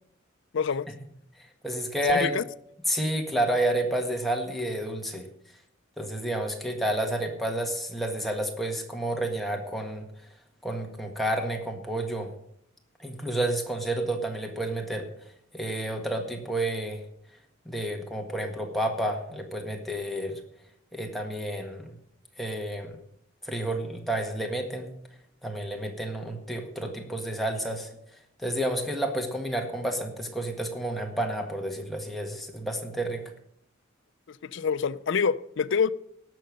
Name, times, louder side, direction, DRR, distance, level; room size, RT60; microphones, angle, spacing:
voice 1, 0.5-0.9 2.1-2.4 34.3-35.9, left 6 dB, 60° left, 0.5 m, -26 dB
voice 2, 1.6-2.3 2.9-5.3 6.0-10.1 10.6-12.3 13.0-15.1 15.5-17.0 17.6-20.4 20.9-21.9 22.4-23.0 23.4-24.9 25.4-27.9 28.4-33.2, right 1 dB, ahead, 1.7 m, -30 dB
18.0 x 6.8 x 6.4 m
head